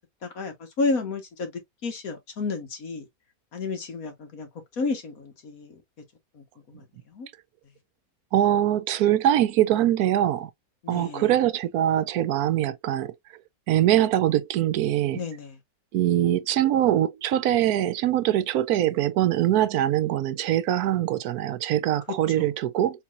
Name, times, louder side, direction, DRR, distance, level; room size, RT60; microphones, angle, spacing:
voice 1, 0.2-1.5 1.8-3.1 3.5-4.5 4.8-5.8 6.4-7.3 10.8-11.3 15.1-15.6 22.4-22.5, left 3 dB, 70° left, 1.9 m, -31 dB
voice 2, 8.3-10.5 10.9-13.1 13.7-15.2 15.9-23.0, right 12 dB, 80° right, 1.1 m, -23 dB
4.3 x 3.9 x 2.4 m
omnidirectional pair, 1.6 m